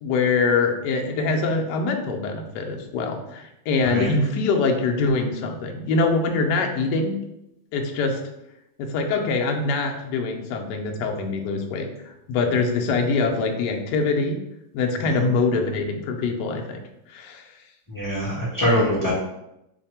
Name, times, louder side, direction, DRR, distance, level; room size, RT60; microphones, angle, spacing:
voice 1, 0.0-7.2 7.7-8.2 8.8-11.9 12.3-14.4 14.7-16.8 17.1-17.5, left 3 dB, 80° left, 2 dB, 0.9 m, -24 dB
voice 2, 17.9-19.1, equal, 15° left, -9 dB, 0.6 m, -23 dB
3.3 x 2.1 x 4.1 m, 0.86 s
omnidirectional pair, 2.3 m